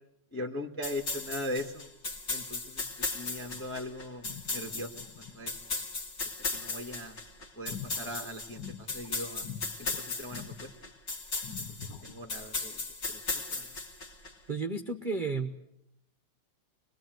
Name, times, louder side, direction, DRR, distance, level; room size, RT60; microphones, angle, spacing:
voice 1, 0.3-1.8 2.3-5.6 6.5-7.2 7.5-9.5 9.8-10.7 11.8-12.8 13.1-13.8, left 1 dB, 5° left, 4 dB, 1.6 m, -40 dB
sound 1, 0.8-14.3, left 3 dB, 45° left, 2.8 m, -37 dB
sound 2, 3.5-3.9 4.2-6.0 7.7-9.1 9.4-10.0 10.3-11.0 11.4-12.3, left 7 dB, 75° left, 2.0 m, -45 dB
voice 2, 14.5-15.6, right 3 dB, 30° right, 6 dB, 1.1 m, -32 dB
24.0 x 21.5 x 9.2 m, 0.80 s
omnidirectional pair, 2.0 m